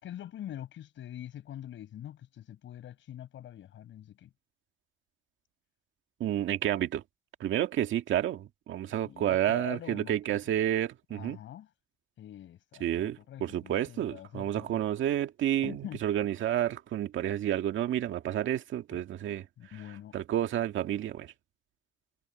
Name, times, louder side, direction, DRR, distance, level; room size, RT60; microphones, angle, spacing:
voice 1, 0.0-4.3 9.0-10.4 11.1-11.7 12.2-14.8 15.6-16.0 18.9-19.0 19.6-20.2, left 11 dB, 75° left, 5.8 m, -44 dB
voice 2, 6.2-7.0 7.4-11.4 12.8-19.5 20.1-21.3, right 11 dB, 75° right, 1.9 m, -30 dB
cardioid pair, 90°, 20 cm